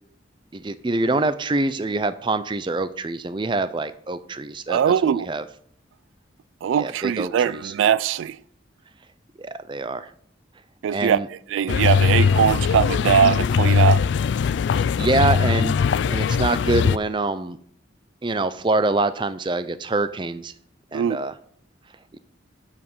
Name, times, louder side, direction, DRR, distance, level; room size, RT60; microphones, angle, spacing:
voice 1, 0.5-5.4 6.8-7.7 9.4-10.1 10.9-11.3 14.7-15.8 16.0-17.6 18.2-20.5 20.9-21.3 22.1-22.2, right 2 dB, 25° right, 0.5 m, -25 dB
voice 2, 4.7-5.3 6.6-8.4 10.8-11.2 11.5-14.0 20.9-21.2, right 8 dB, 85° right, 0.3 m, -21 dB
sound 1, 11.7-17.0, left 6 dB, 65° left, 0.3 m, -20 dB
11.0 x 5.0 x 5.4 m
head